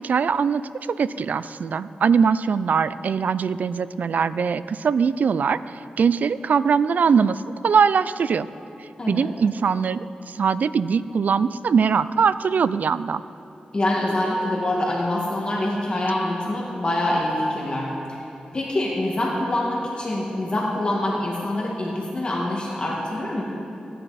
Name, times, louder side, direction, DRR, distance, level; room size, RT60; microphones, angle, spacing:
voice 1, 0.0-8.5 8.8-13.2, right 6 dB, 70° right, 15 dB, 0.3 m, -22 dB
voice 2, 9.0-9.3 13.7-17.9 18.5-23.4, left 1 dB, 35° left, -3 dB, 2.0 m, -25 dB
17.0 x 10.0 x 4.2 m, 2.8 s
cardioid pair, 80°, 3 cm